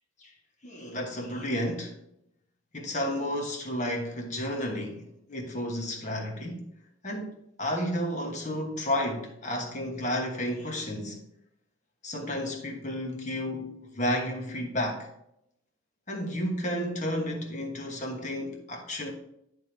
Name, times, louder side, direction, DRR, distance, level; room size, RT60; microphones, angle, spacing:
voice 1, 0.6-2.0 2.7-6.6 7.0-11.2 12.0-15.1 16.1-19.1, left 1 dB, 35° left, 1.2 m, -32 dB
10.5 x 3.5 x 4.5 m
head